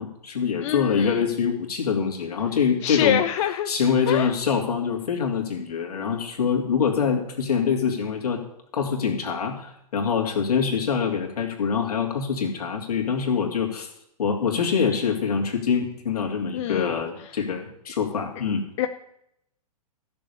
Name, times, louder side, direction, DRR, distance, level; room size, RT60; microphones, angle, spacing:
voice 1, 0.0-3.2 3.7-8.4 8.7-13.9 14.2-18.6, left 6 dB, 75° left, 1 dB, 3.0 m, -25 dB
voice 2, 0.6-1.2 2.8-3.7 4.1-4.3 16.5-16.9 18.8-18.9, left 11 dB, 50° left, 9 dB, 0.7 m, -25 dB
14.0 x 7.0 x 7.0 m, 0.77 s
hypercardioid pair, 120°, 20 cm